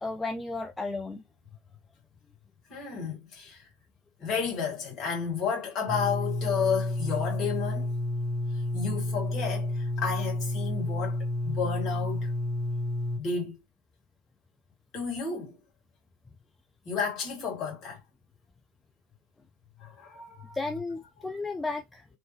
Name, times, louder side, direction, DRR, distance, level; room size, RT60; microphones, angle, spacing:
voice 1, 0.0-1.2 20.5-22.1, left 3 dB, 10° left, 0.4 m, -33 dB
voice 2, 2.7-3.7 4.2-7.9 8.7-12.3 13.2-13.6 14.9-15.6 16.9-18.0 19.8-20.6, left 6 dB, 30° left, 2.1 m, -32 dB
sound 1, 5.9-13.2, left 1 dB, 20° right, 1.4 m, -30 dB
3.1 x 3.0 x 3.1 m
figure-of-eight pair, 90°, 0 cm